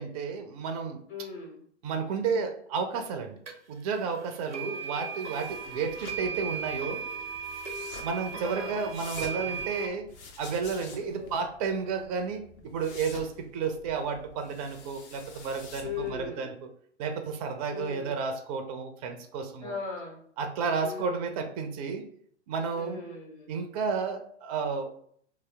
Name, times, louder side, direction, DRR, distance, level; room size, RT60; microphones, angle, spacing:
voice 1, 0.0-1.0 1.8-3.4 3.7-7.0 8.0-10.1 10.4-16.5 17.0-19.7 20.4-22.1 22.5-23.0 23.5-24.9, right 5 dB, 35° right, 6 dB, 0.5 m, -32 dB
voice 2, 1.1-1.6 5.7-5.9 8.3-8.8 11.0-11.4 15.8-16.5 17.7-18.1 19.6-20.2 20.8-21.3 22.7-23.5, left 5 dB, 40° left, -5 dB, 1.5 m, -39 dB
sound 1, 3.5-3.6 4.5-9.9, right 5 dB, 90° right, 0.7 m, -37 dB
sound 2, 5.2-16.3, left 3 dB, 25° left, 0.5 m, -48 dB
3.0 x 2.9 x 3.4 m, 0.63 s
figure-of-eight pair, 115°, 35 cm